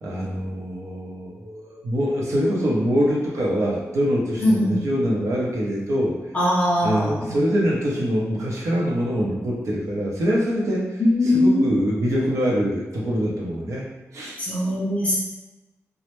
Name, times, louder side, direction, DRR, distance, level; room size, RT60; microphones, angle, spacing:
voice 1, 0.0-6.1 6.8-13.8 14.1-14.4, equal, 75° right, -4 dB, 0.6 m, -24 dB
voice 2, 4.4-4.9 6.3-7.3 11.0-11.8 14.4-15.2, left 1 dB, 25° left, -7 dB, 0.4 m, -21 dB
2.1 x 2.0 x 3.0 m, 1.1 s
wide cardioid pair, 170°, 5 cm